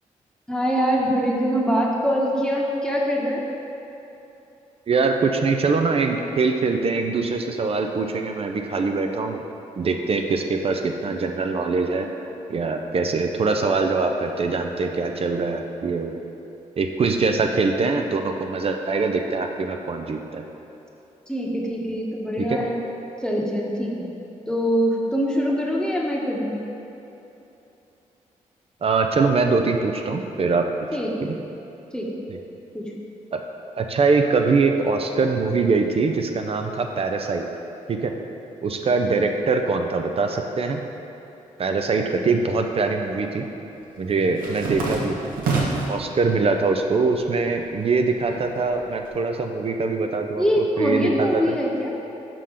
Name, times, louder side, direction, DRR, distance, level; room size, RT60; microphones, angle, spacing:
voice 1, 0.5-3.4 21.3-22.8 23.2-24.1 24.5-26.5 30.9-31.3 31.9-32.1 32.7-32.9 50.4-51.9, equal, 5° left, -3 dB, 1.0 m, -23 dB
voice 2, 4.9-9.4 9.8-12.1 12.5-16.2 16.8-20.4 22.4-22.6 28.8-30.7 31.2-31.3 32.3-32.4 33.3-33.4 33.8-37.5 37.9-38.1 38.6-40.8 41.6-43.5 44.0-45.1 45.9-51.6, right 4 dB, 45° right, 4 dB, 0.4 m, -23 dB
sound 1, 42.2-42.9 43.2-46.0 46.5-47.1 47.4-49.1, right 3 dB, 90° right, 0.8 m, -29 dB
5.0 x 3.8 x 5.7 m, 3.0 s
cardioid pair, 65°, 14 cm